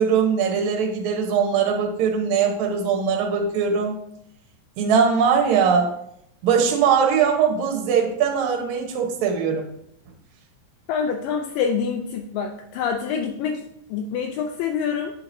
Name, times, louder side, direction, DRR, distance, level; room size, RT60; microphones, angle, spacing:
voice 1, 0.0-3.9 4.8-5.9 6.4-9.7, right 6 dB, 65° right, 1 dB, 2.0 m, -21 dB
voice 2, 10.9-13.7 13.9-15.1, left 6 dB, 80° left, 3 dB, 2.2 m, -26 dB
9.1 x 4.8 x 2.6 m, 0.75 s
omnidirectional pair, 4.0 m